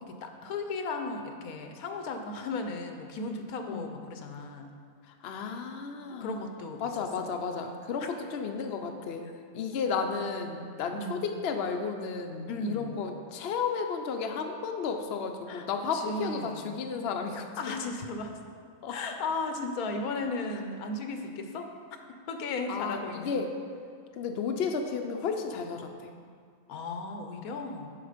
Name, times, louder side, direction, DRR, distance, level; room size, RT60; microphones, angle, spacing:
voice 1, 0.2-4.7 6.2-7.3 10.9-11.3 12.5-12.9 15.5-15.7 15.9-16.8 17.6-18.3 18.9-21.7 22.3-23.4 26.7-27.9, left 3 dB, 90° left, 5 dB, 1.3 m, -35 dB
voice 2, 5.2-6.4 6.8-9.3 9.5-17.5 18.8-19.0 22.7-23.5 24.2-26.1, left 5 dB, 55° left, 4 dB, 0.8 m, -33 dB
11.5 x 4.3 x 5.0 m, 2.1 s
omnidirectional pair, 1.5 m